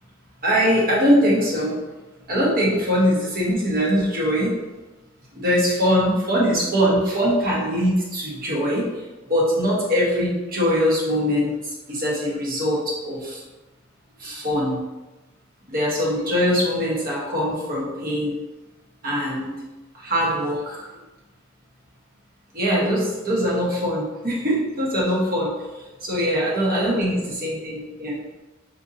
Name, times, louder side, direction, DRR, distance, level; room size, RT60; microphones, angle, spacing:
voice 1, 0.4-1.8 2.3-4.5 5.3-8.9 9.3-11.6 11.9-13.4 14.2-14.8 15.7-18.4 19.0-19.6 19.9-20.9 22.5-25.6 26.0-28.2, equal, 50° right, -4 dB, 1.0 m, -22 dB
4.4 x 2.7 x 2.6 m, 1.1 s
head